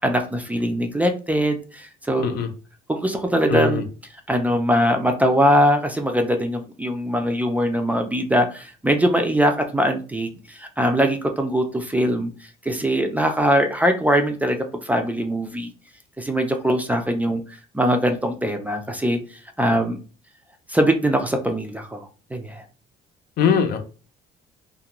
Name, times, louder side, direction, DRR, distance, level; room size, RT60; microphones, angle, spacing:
voice 1, 0.0-2.4 2.9-3.8 4.3-15.7 16.2-20.0 20.7-22.6, equal, 10° right, 5 dB, 0.4 m, -22 dB
voice 2, 2.2-2.5 3.5-3.8 23.4-23.8, left 7 dB, 70° left, 6 dB, 0.5 m, -21 dB
2.4 x 2.2 x 2.9 m, 0.36 s
cardioid pair, 110°, 17 cm